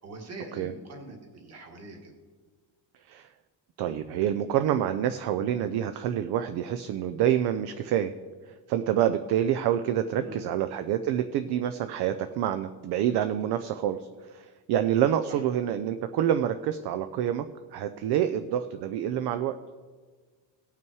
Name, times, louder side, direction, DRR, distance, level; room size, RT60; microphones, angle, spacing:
voice 1, 0.0-2.1 10.1-10.6 15.3-15.4, right 2 dB, 35° right, 1 dB, 1.9 m, -43 dB
voice 2, 3.8-8.1 8.7-17.4 17.7-19.6, right 10 dB, 60° right, 9 dB, 0.6 m, -27 dB
17.5 x 5.9 x 4.6 m, 1.5 s
cardioid pair, 165°, 46 cm